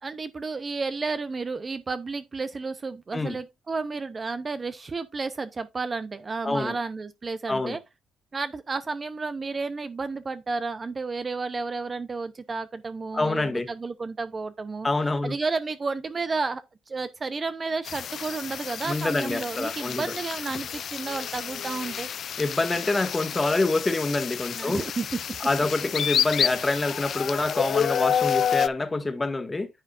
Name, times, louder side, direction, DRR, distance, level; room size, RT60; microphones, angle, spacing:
voice 1, 0.0-7.8 8.3-14.9 15.2-22.1 24.5-25.2, right 4 dB, 30° right, 0.7 m, -32 dB
voice 2, 6.4-6.7 7.5-7.8 13.1-13.7 14.8-15.3 18.8-20.1 22.4-24.8 25.4-29.7, left 2 dB, 20° left, 1.6 m, -26 dB
sound 1, 17.9-28.7, left 8 dB, 60° left, 0.4 m, -29 dB
9.7 x 7.5 x 2.5 m
cardioid pair, 90°, 0 cm